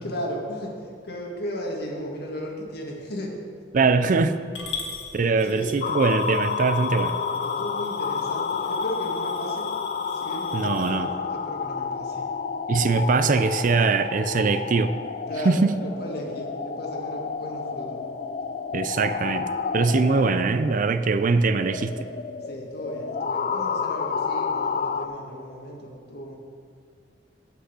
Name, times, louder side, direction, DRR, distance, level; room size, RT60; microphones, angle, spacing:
voice 1, 0.0-3.4 4.7-5.0 5.4-5.8 7.4-9.7 10.0-12.3 15.3-18.0 22.4-26.4, equal, 60° left, -1 dB, 1.9 m, -35 dB
voice 2, 3.7-4.4 5.1-7.1 10.5-11.1 12.7-14.9 15.5-15.7 18.7-19.5 19.7-21.9, right 4 dB, 50° right, 12 dB, 0.4 m, -22 dB
Coin (dropping) / Glass, 4.5-10.9, left 5 dB, 85° left, 1.8 m, -40 dB
sound 1, 5.8-25.1, left 5 dB, 45° left, 0.4 m, -30 dB
8.0 x 6.2 x 8.1 m, 2.2 s
head